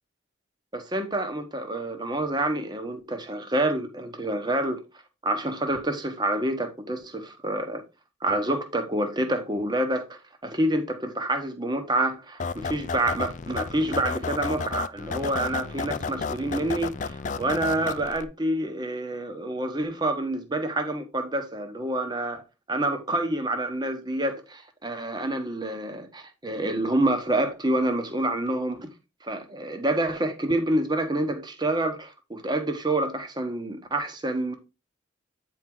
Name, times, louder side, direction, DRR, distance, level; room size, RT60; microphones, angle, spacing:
voice 1, 0.7-4.8 5.2-7.8 8.2-28.9 29.2-34.5, right 1 dB, 20° right, 1.2 m, -27 dB
sound 1, 12.4-18.2, left 4 dB, 40° left, 0.4 m, -32 dB
9.0 x 4.7 x 3.8 m
head